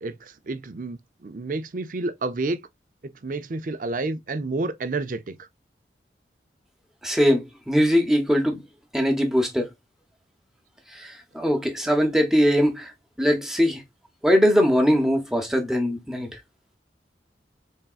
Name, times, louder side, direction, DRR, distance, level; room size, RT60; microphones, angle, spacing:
voice 1, 0.0-2.6 3.0-5.3, right 3 dB, 50° right, 0.5 m, -30 dB
voice 2, 7.0-8.6 8.9-9.7 11.0-12.9 13.2-13.8 14.2-16.3, equal, 5° right, 1.0 m, -21 dB
4.0 x 3.5 x 2.3 m
head